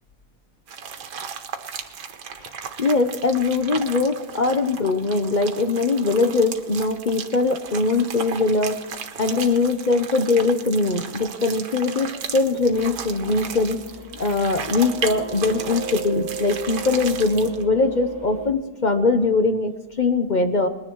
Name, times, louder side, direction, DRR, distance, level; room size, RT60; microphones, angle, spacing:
sound 1, 0.7-17.6, right 7 dB, 90° right, 1.6 m, -35 dB
voice 1, 2.8-13.8 14.2-20.7, left 3 dB, 40° left, 7 dB, 0.7 m, -21 dB
sound 2, 12.6-18.5, right 3 dB, 15° right, 2.4 m, -36 dB
20.5 x 10.5 x 4.6 m, 1.2 s
omnidirectional pair, 1.8 m